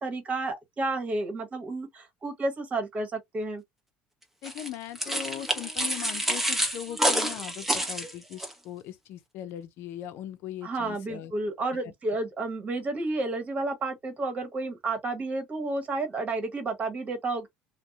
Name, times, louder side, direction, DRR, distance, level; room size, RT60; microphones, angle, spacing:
voice 1, 0.0-3.6 10.6-17.5, right 2 dB, 35° right, 1.2 m, -31 dB
voice 2, 4.4-11.6, left 11 dB, 70° left, 0.6 m, -39 dB
sound 1, 4.4-8.5, right 1 dB, 5° right, 1.0 m, -28 dB
2.6 x 2.2 x 2.3 m
supercardioid pair, 95°, 4 cm